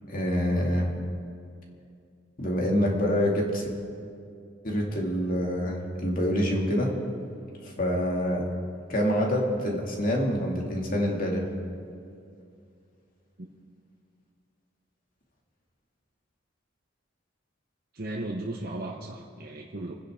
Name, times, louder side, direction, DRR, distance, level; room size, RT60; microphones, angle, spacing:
voice 1, 0.1-0.9 2.4-3.7 4.6-6.9 7.6-8.5 8.9-11.5, equal, 45° left, -1 dB, 2.4 m, -26 dB
voice 2, 17.9-20.0, right 1 dB, 50° right, -2 dB, 1.0 m, -36 dB
28.5 x 10.0 x 3.7 m, 2.4 s
head